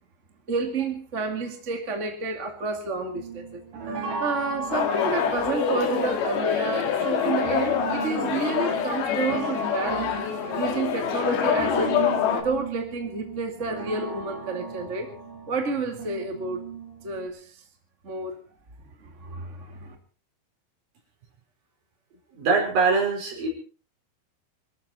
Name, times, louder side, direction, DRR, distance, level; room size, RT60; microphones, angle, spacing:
voice 1, 0.5-3.6 4.2-10.1 10.5-15.1 15.5-16.6 17.0-17.6 18.0-18.4 19.0-20.0, right 3 dB, 25° right, 4 dB, 1.6 m, -30 dB
sound 1, 3.1-17.3, right 4 dB, 65° right, 5.9 m, -37 dB
sound 2, 4.7-12.4, left 7 dB, 60° left, 3.7 m, -26 dB
voice 2, 22.3-23.5, right 4 dB, 50° right, 1 dB, 6.5 m, -23 dB
24.0 x 14.0 x 4.3 m, 0.37 s
omnidirectional pair, 5.3 m